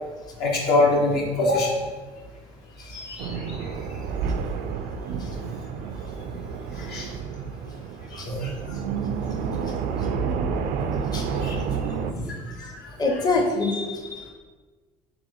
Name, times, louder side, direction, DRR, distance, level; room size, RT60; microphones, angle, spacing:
voice 1, 0.4-1.8 2.9-3.8 6.7-7.1 8.1-8.6 11.3-11.6 12.1-12.9, left 2 dB, 65° left, -1 dB, 1.1 m, -25 dB
sound 1, 3.2-12.1, right 6 dB, 65° right, 0.4 m, -29 dB
voice 2, 13.0-14.3, left 3 dB, 25° left, 1 dB, 0.7 m, -25 dB
3.5 x 3.4 x 3.4 m, 1.3 s
hypercardioid pair, 70°, 18 cm